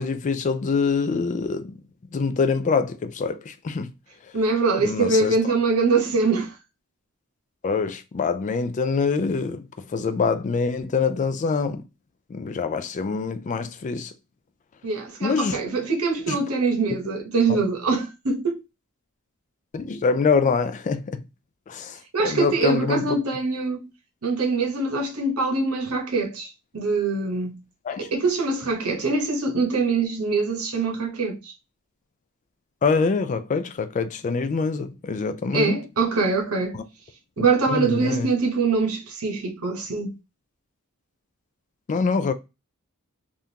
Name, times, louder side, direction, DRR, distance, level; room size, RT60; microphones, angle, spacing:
voice 1, 0.0-1.8 2.1-3.9 4.8-5.3 7.6-9.6 9.9-11.8 12.3-14.1 15.2-15.6 16.3-16.4 17.5-17.6 19.7-21.2 21.7-23.1 27.9-28.1 32.8-35.8 36.7-36.8 37.4-38.3 41.9-42.3, left 5 dB, 35° left, 0.3 m, -25 dB
voice 2, 4.3-6.5 14.8-18.6 22.1-23.9 24.2-27.6 28.0-31.5 35.5-36.8 37.4-40.1, right 4 dB, 70° right, 1.0 m, -23 dB
3.6 x 2.5 x 2.7 m
head